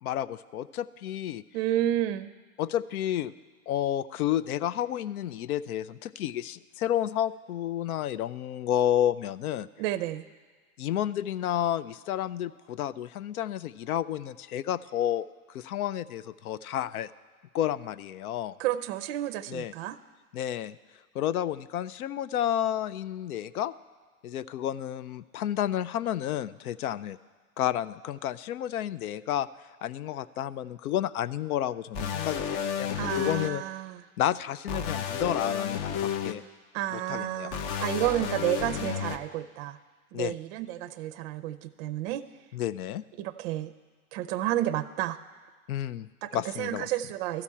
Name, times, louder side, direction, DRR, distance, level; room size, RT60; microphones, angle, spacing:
voice 1, 0.0-1.4 2.6-3.3 3.7-9.7 10.8-15.3 15.5-17.1 17.5-18.6 19.5-19.7 20.3-20.8 21.1-23.7 24.2-27.2 27.6-29.5 29.8-33.6 34.2-36.4 36.9-37.5 40.1-40.3 42.5-43.0 45.7-46.9, left 11 dB, 85° left, 18 dB, 0.5 m, -31 dB
voice 2, 1.5-2.3 9.8-10.3 18.6-20.0 33.0-34.0 36.7-39.8 40.1-42.2 43.2-43.7 44.1-45.2 46.2-47.4, right 13 dB, 45° right, 12 dB, 0.5 m, -31 dB
sound 1, 31.9-33.5 34.7-36.3 37.5-39.2, left 8 dB, 30° left, 0.4 m, -31 dB
13.0 x 4.4 x 8.4 m, 1.5 s
hypercardioid pair, 115°, 43 cm